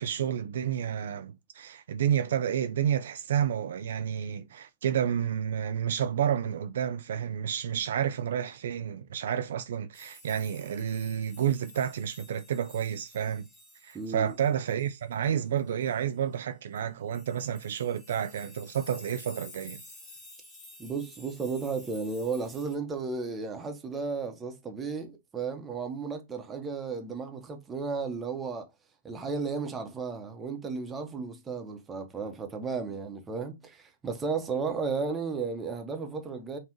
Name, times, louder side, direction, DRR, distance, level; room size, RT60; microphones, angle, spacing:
voice 1, 0.0-13.5 13.8-19.8, right 9 dB, 65° right, 0.4 m, -30 dB
sound 1, 9.9-16.1 16.8-16.9 17.1-22.8, left 2 dB, 15° left, 1.7 m, -52 dB
voice 2, 13.9-14.3 20.8-28.7 29.0-36.6, right 4 dB, 15° right, 1.0 m, -34 dB
5.5 x 2.4 x 3.0 m
hypercardioid pair, 120°, 0 cm